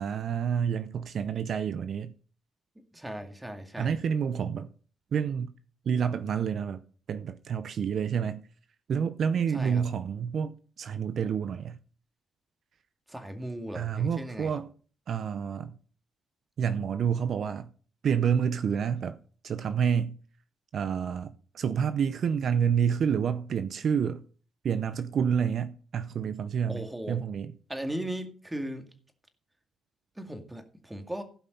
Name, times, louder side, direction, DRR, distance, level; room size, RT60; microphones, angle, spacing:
voice 1, 0.0-2.1 3.8-4.7 5.1-5.5 5.9-6.8 7.1-8.4 8.9-11.8 13.7-14.7 15.1-15.7 16.6-17.7 18.0-19.2 19.4-20.2 20.7-24.2 24.6-27.5, right 7 dB, 60° right, 0.6 m, -28 dB
voice 2, 2.9-4.0 9.3-9.8 13.1-14.5 26.7-27.2 27.7-28.9 30.2-31.2, right 1 dB, 10° right, 2.1 m, -37 dB
16.0 x 5.6 x 5.3 m
cardioid pair, 90°, 0 cm